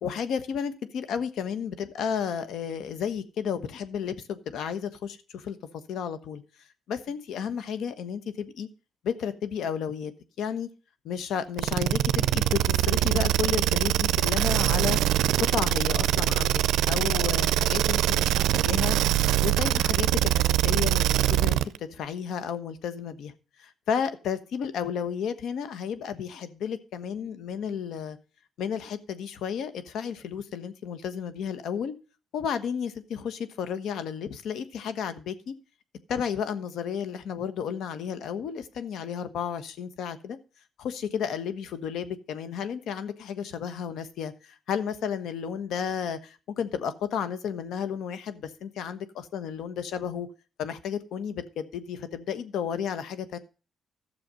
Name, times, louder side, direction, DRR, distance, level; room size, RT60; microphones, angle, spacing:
voice 1, 0.0-5.6 5.9-6.4 6.9-8.7 9.0-10.1 10.4-10.7 11.0-15.0 15.4-16.6 16.9-19.0 19.4-23.3 23.6-28.2 28.6-31.9 32.3-35.5 36.1-40.4 40.8-50.3 50.6-53.4, left 7 dB, 75° left, 1.3 m, -32 dB
sound 1, 11.6-21.8, right 13 dB, 85° right, 0.5 m, -23 dB
13.0 x 7.0 x 5.2 m
cardioid pair, 90°, 0 cm